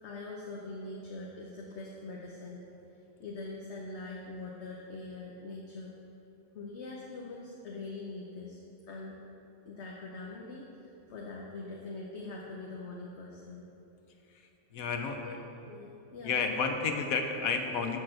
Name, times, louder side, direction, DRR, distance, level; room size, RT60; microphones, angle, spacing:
voice 1, 0.0-2.6 3.2-5.9 6.5-8.6 8.9-9.2 9.7-13.6 15.1-16.5, left 3 dB, 60° left, -3 dB, 1.0 m, -43 dB
voice 2, 14.7-15.4 16.2-18.0, left 5 dB, 80° left, 5 dB, 1.2 m, -31 dB
6.5 x 6.4 x 7.5 m, 2.9 s
omnidirectional pair, 1.5 m